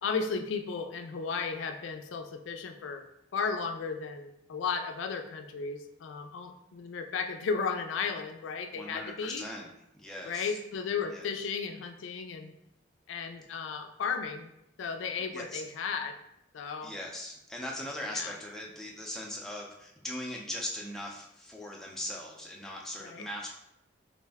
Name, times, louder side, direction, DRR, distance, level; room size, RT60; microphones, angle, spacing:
voice 1, 0.0-3.0 3.3-9.4 10.3-12.5 13.1-14.5 14.8-16.1 16.5-16.9 18.1-18.3 23.0-23.3, left 5 dB, 85° left, 6 dB, 0.4 m, -34 dB
voice 2, 8.7-10.6 11.1-11.3 15.2-15.6 16.8-23.6, left 1 dB, ahead, -2 dB, 0.4 m, -40 dB
3.2 x 2.5 x 3.4 m, 0.82 s
head